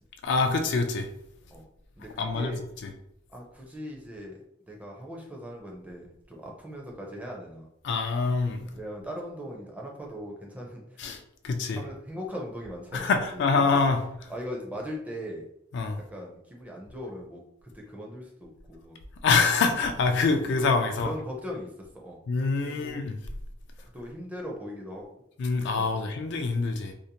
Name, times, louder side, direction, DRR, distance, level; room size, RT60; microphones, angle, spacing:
voice 1, 0.2-1.1 2.2-2.5 2.8-2.9 7.8-8.7 11.0-11.8 12.9-14.0 15.7-16.0 19.2-21.1 22.3-23.2 25.4-26.9, left 4 dB, 60° left, 6 dB, 0.3 m, -25 dB
voice 2, 2.0-2.6 3.3-4.3 4.7-7.7 8.8-10.8 11.8-13.8 14.3-15.4 16.1-19.0 20.4-20.6 21.0-21.7 21.9-22.2 22.6-23.1 23.9-25.2 25.8-25.9, equal, 10° right, -1 dB, 0.4 m, -39 dB
2.6 x 2.0 x 2.8 m, 0.75 s
head